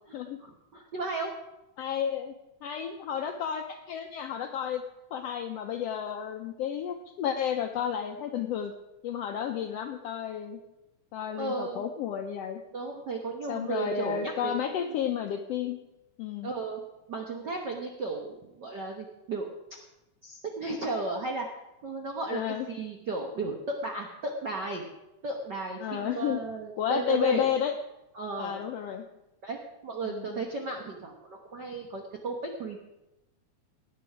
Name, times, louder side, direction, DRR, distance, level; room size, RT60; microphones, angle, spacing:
voice 1, 0.1-1.3 11.4-11.8 12.7-14.9 16.4-16.8 17.1-19.5 20.2-21.4 21.8-24.9 25.2-27.4 28.1-28.6 29.4-32.8, right 3 dB, 70° right, 1 dB, 1.0 m, -34 dB
voice 2, 1.8-2.3 2.6-4.8 5.1-8.7 9.0-10.6 11.1-12.6 13.5-15.8 16.2-16.5 22.3-22.7 25.8-26.4 26.8-27.7 28.4-29.0 30.0-30.4, left 9 dB, 80° left, 5 dB, 1.4 m, -32 dB
17.5 x 9.3 x 4.9 m, 0.97 s
omnidirectional pair, 3.6 m